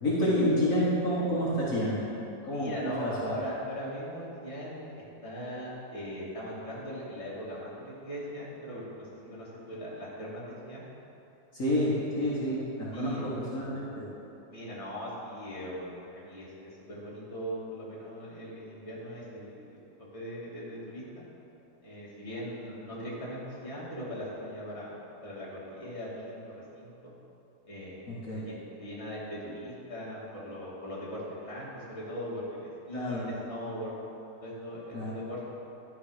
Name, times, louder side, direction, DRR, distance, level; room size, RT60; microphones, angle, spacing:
voice 1, 0.0-2.0 2.5-3.4 11.5-14.1 28.1-28.4 32.9-33.2 34.9-35.1, equal, 55° left, -8 dB, 1.8 m, -29 dB
voice 2, 2.5-10.8 12.9-13.2 14.5-21.3 21.8-27.1 27.7-33.9 34.4-35.5, equal, 20° left, -8 dB, 2.0 m, -40 dB
11.5 x 5.2 x 4.9 m, 2.9 s
omnidirectional pair, 1.7 m